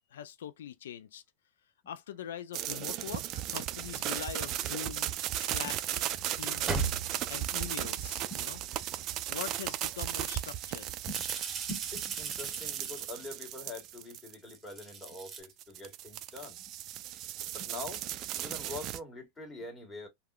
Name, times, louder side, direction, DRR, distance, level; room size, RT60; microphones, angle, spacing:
voice 1, 0.1-1.2 1.9-5.1 5.4-5.7 6.4-7.0 7.3-8.6 9.3-10.9, left 9 dB, 85° left, 0.3 m, -43 dB
sound 1, 2.5-14.5 15.4-19.0, right 12 dB, 40° right, 0.3 m, -36 dB
sound 2, 3.1-3.2 4.7-4.8 6.1-7.3 9.3-9.4 9.9-10.1 11.0-13.3 14.5-15.4, right 5 dB, 25° right, 0.7 m, -37 dB
voice 2, 11.7-16.6 17.5-20.1, left 2 dB, 15° left, 1.3 m, -44 dB
3.4 x 2.2 x 2.3 m
supercardioid pair, 130°, 0 cm